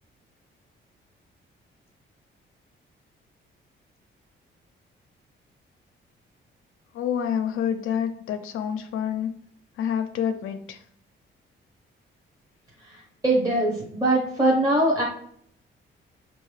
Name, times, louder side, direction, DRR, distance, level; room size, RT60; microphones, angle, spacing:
voice 1, 6.9-9.3 9.8-10.8, left 8 dB, 90° left, 7 dB, 0.5 m, -27 dB
voice 2, 12.8-15.0, right 1 dB, 20° right, -3 dB, 0.8 m, -22 dB
5.6 x 2.6 x 3.1 m, 0.66 s
cardioid pair, 135°, 21 cm